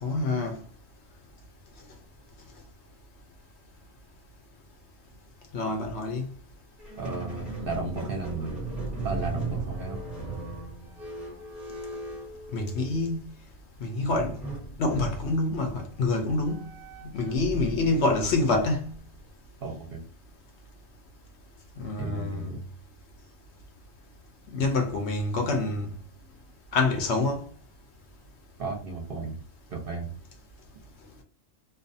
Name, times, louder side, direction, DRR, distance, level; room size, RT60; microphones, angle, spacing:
voice 1, 0.0-0.6 5.5-6.3 12.5-13.2 13.8-14.4 14.8-16.7 17.1-19.0 21.8-22.5 24.5-25.9 26.7-27.5, left 2 dB, 65° left, 0.8 m, -26 dB
Squeak, 6.8-13.1 14.1-19.3, right 2 dB, ahead, 0.6 m, -37 dB
voice 2, 7.0-8.6 9.0-10.1 19.6-20.0 22.0-22.6 28.6-29.4 29.7-30.1, right 3 dB, 55° right, 0.7 m, -34 dB
2.5 x 2.3 x 2.5 m
omnidirectional pair, 1.3 m